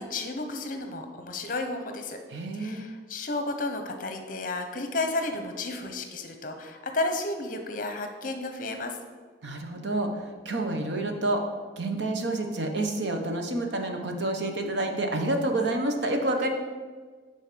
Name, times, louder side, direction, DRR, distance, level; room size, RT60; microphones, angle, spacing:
voice 1, 0.0-2.2 2.5-9.0, left 2 dB, 45° left, 5 dB, 0.9 m, -32 dB
voice 2, 2.3-2.8 9.4-11.4 11.8-16.5, right 2 dB, 70° right, 4 dB, 1.1 m, -28 dB
9.6 x 4.1 x 6.8 m, 1.5 s
head